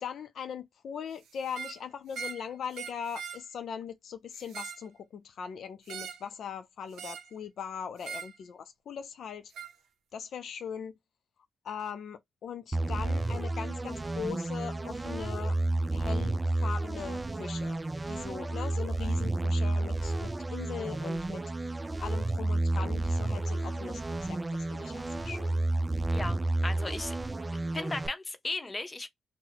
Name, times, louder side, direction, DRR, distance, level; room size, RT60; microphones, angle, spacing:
voice 1, 0.0-9.5 10.1-10.9 11.6-15.6 15.9-17.8 18.1-21.7 22.0-25.6, left 7 dB, 70° left, 0.4 m, -40 dB
sound 1, 1.4-1.8 2.1-2.4 2.7-3.4 4.3-4.9 5.9-6.3 7.0-7.3 8.0-8.3 9.5-9.7, right 7 dB, 85° right, 0.6 m, -41 dB
sound 2, 12.7-28.1, right 2 dB, 25° right, 0.3 m, -31 dB
voice 2, 26.1-27.2 27.5-29.1, left 2 dB, 30° left, 0.8 m, -36 dB
2.7 x 2.0 x 3.9 m
supercardioid pair, 55°, 0 cm